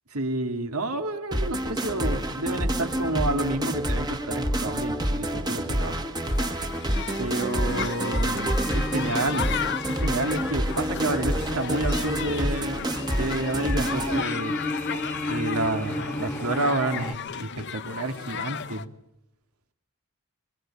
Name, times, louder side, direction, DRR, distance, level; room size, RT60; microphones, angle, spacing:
voice 1, 0.1-6.0 7.2-9.5 9.9-14.6 15.3-18.9, right 2 dB, 85° right, 5 dB, 2.5 m, -30 dB
sound 1, 1.3-14.2, right 1 dB, 20° right, 1.5 m, -28 dB
sound 2, 6.2-18.8, left 7 dB, 50° left, 0.9 m, -35 dB
sound 3, 8.6-17.1, left 1 dB, 5° left, 1.3 m, -34 dB
24.0 x 21.5 x 9.1 m, 0.82 s
head